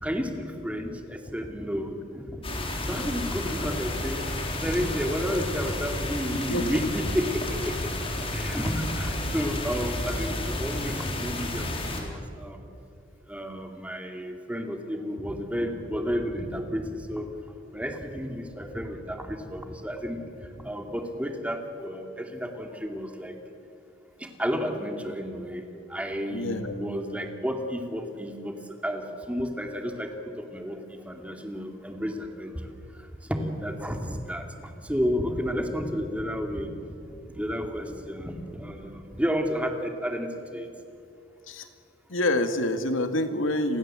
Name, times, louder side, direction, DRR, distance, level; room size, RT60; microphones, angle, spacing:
voice 1, 0.0-4.2 4.5-7.9 8.3-12.6 13.3-17.3 17.7-23.4 24.2-28.6 28.8-32.7 33.3-40.7, equal, 5° right, 4 dB, 2.4 m, -32 dB
sound 1, 2.4-12.0, left 1 dB, 30° left, 3.8 m, -31 dB
voice 2, 6.5-6.9 26.3-26.8 41.5-41.7 42.1-43.8, left 1 dB, 85° left, 7 dB, 2.1 m, -27 dB
30.0 x 22.5 x 7.6 m, 2.6 s
head